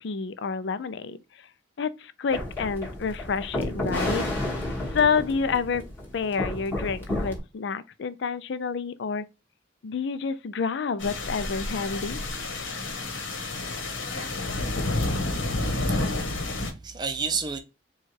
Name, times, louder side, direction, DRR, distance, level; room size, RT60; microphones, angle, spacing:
voice 1, 0.0-1.2 1.8-4.2 4.9-5.8 6.1-9.2 9.8-12.2, left 5 dB, 65° left, 0.4 m, -28 dB
sound 1, 2.3-7.4, left 1 dB, 10° left, 1.3 m, -31 dB
sound 2, 11.0-16.7, left 2 dB, 85° left, 1.1 m, -29 dB
voice 2, 15.3-17.6, right 5 dB, 20° right, 0.5 m, -33 dB
4.3 x 2.3 x 4.6 m
head